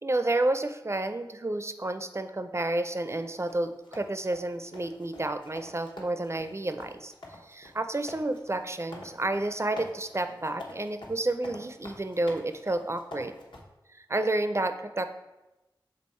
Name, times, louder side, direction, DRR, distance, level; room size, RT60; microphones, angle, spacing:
voice 1, 0.0-7.1 7.4-13.3 13.9-15.1, right 2 dB, 35° right, 9 dB, 0.4 m, -30 dB
sound 1, 3.1-13.6, left 1 dB, 70° left, 1.1 m, -47 dB
6.3 x 3.7 x 4.3 m, 1.0 s
wide cardioid pair, 60°, 9 cm